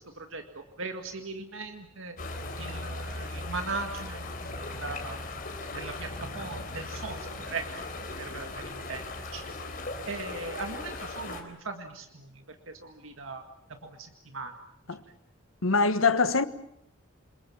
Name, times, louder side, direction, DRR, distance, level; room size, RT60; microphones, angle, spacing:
voice 1, 0.0-2.2 2.6-5.2 5.7-7.7 8.2-9.0 9.3-9.4 10.1-12.3 12.7-13.4 13.7-14.5, right 3 dB, 75° right, 1.9 m, -39 dB
sound 1, 2.2-11.4, left 2 dB, 45° left, 3.9 m, -38 dB
voice 2, 15.6-16.4, left 4 dB, 90° left, 1.3 m, -23 dB
28.0 x 22.0 x 7.2 m
head